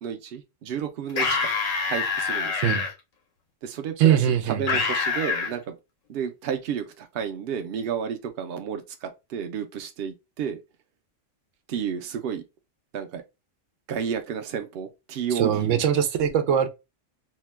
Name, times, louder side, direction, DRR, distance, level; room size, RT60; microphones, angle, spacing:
voice 1, 0.0-1.5 1.9-2.7 3.6-5.7 6.1-10.6 11.7-12.4 12.9-13.2 13.9-15.8, right 7 dB, 60° right, 0.7 m, -31 dB
sound 1, 1.1-2.9 4.7-5.5, left 5 dB, 85° left, 1.2 m, -25 dB
voice 2, 4.0-4.6 15.4-16.7, right 9 dB, 85° right, 0.9 m, -21 dB
2.8 x 2.2 x 3.1 m
omnidirectional pair, 1.3 m